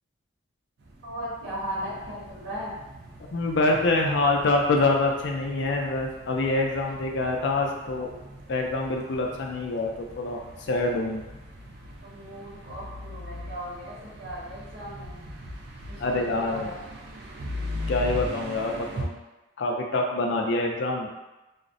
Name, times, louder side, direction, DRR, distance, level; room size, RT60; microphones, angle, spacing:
sound 1, 0.8-19.1, left 1 dB, 60° right, 0.3 m, -40 dB
voice 1, 1.0-2.8 12.0-15.2 15.9-16.8, equal, 75° right, -8 dB, 1.1 m, -37 dB
voice 2, 3.3-8.1 8.5-10.4 10.7-11.2 16.0-16.7 17.9-19.2 19.6-21.1, left 2 dB, 70° left, 1 dB, 0.4 m, -25 dB
2.4 x 2.0 x 2.5 m, 1.1 s
head